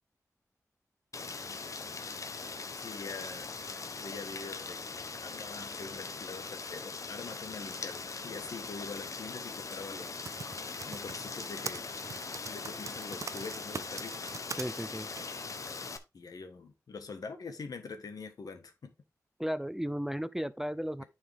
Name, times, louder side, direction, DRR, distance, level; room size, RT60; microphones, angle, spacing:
Rain, 1.1-16.0, left 4 dB, 60° left, 0.9 m, -41 dB
voice 1, 2.8-3.5 4.0-4.8 5.2-10.2 10.9-11.9 12.5-14.4 16.1-18.9 21.0-21.1, left 4 dB, 80° left, 1.5 m, -44 dB
Typing, 10.0-14.6 15.2-15.3, right 5 dB, 55° right, 0.4 m, -41 dB
voice 2, 14.6-15.1 19.4-21.0, equal, 5° right, 0.5 m, -34 dB
9.4 x 4.8 x 3.6 m
wide cardioid pair, 75°, 6 cm